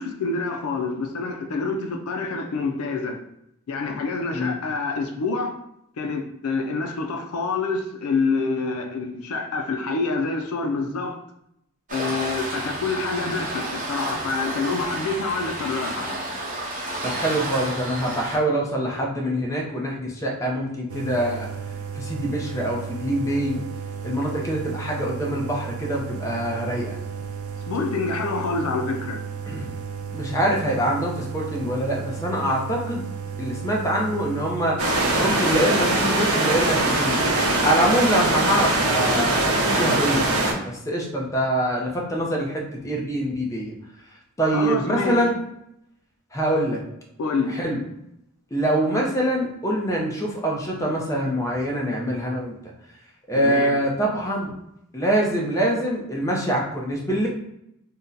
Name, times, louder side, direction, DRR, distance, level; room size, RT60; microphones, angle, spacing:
voice 1, 0.0-3.2 3.7-5.6 6.0-11.2 11.9-16.2 27.7-29.2 44.5-45.2 47.2-47.6 53.3-53.8, left 4 dB, 80° left, 0.4 m, -27 dB
Waves surf, 11.9-18.4, right 1 dB, 40° right, 0.7 m, -31 dB
voice 2, 17.0-21.5 21.9-23.6 24.0-27.0 29.5-29.7 30.1-33.1 33.4-34.8 35.2-37.2 37.6-43.7 44.4-45.3 46.3-46.8 47.5-47.8 48.5-52.5 53.3-54.5 54.9-57.3, right 1 dB, 15° left, 0.6 m, -24 dB
sound 1, 20.9-34.8, right 6 dB, 65° right, 0.3 m, -34 dB
sound 2, 34.8-40.5, right 2 dB, 90° right, 0.7 m, -21 dB
2.7 x 2.1 x 3.7 m
head